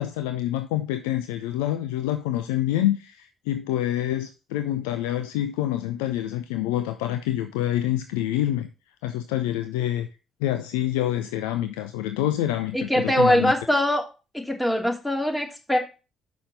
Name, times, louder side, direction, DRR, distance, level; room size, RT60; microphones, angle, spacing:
voice 1, 0.0-8.7 9.0-10.1 10.4-13.5, left 12 dB, 85° left, 8 dB, 0.5 m, -27 dB
voice 2, 12.7-14.0 14.3-15.8, equal, 10° left, 2 dB, 2.6 m, -22 dB
6.2 x 5.7 x 5.1 m, 0.31 s
hypercardioid pair, 50°, 0 cm